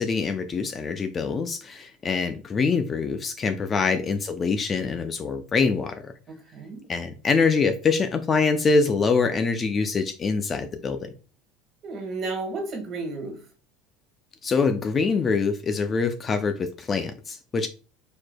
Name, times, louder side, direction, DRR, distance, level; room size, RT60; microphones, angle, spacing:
voice 1, 0.0-6.1 6.9-11.1 14.4-17.7, left 4 dB, 25° left, 0.4 m, -24 dB
voice 2, 3.5-3.9 6.3-6.9 11.8-13.5, right 3 dB, 35° right, 1.7 m, -33 dB
4.7 x 4.3 x 2.2 m
cardioid pair, 140°, 0 cm